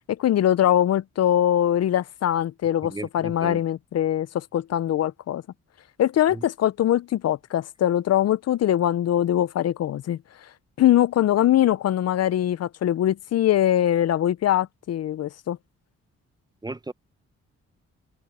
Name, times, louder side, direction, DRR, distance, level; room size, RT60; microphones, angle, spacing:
voice 1, 0.1-5.4 6.0-10.5 10.8-15.6, left 11 dB, 60° left, 0.6 m, -22 dB
voice 2, 2.8-3.6 6.3-6.4 16.6-16.9, right 2 dB, 15° right, 0.9 m, -35 dB
supercardioid pair, 65°, 29 cm